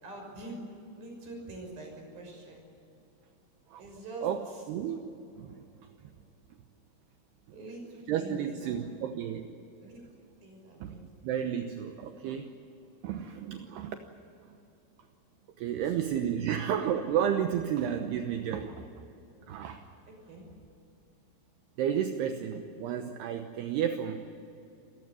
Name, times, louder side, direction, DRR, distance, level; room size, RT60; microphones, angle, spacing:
voice 1, 0.0-0.6 0.9-2.6 3.8-4.9 7.5-8.8 9.8-10.0 10.4-11.6 15.6-16.8 20.1-20.6, right 2 dB, 45° right, 1 dB, 7.8 m, -46 dB
voice 2, 4.7-5.7 8.1-9.6 10.8-12.5 13.0-14.0 15.6-18.9 19.5-19.8 21.8-24.2, right 9 dB, 75° right, 6 dB, 2.5 m, -32 dB
28.0 x 15.5 x 9.8 m, 2.8 s
omnidirectional pair, 5.9 m